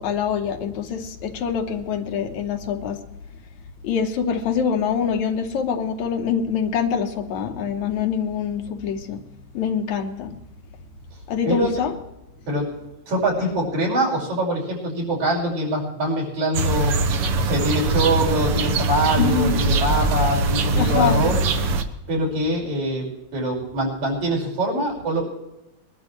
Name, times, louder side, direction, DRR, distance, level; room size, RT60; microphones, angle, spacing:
voice 1, 0.0-3.0 3.8-9.2 9.5-10.4 11.3-11.9 19.2-19.6 20.8-21.2, left 7 dB, 80° left, 4 dB, 2.5 m, -25 dB
voice 2, 13.1-16.9 17.4-21.4 22.1-23.1 23.3-25.2, right 1 dB, 80° right, -3 dB, 6.8 m, -23 dB
sound 1, 16.5-21.8, right 3 dB, 65° right, 1.7 m, -22 dB
22.5 x 12.0 x 3.2 m, 0.95 s
omnidirectional pair, 3.3 m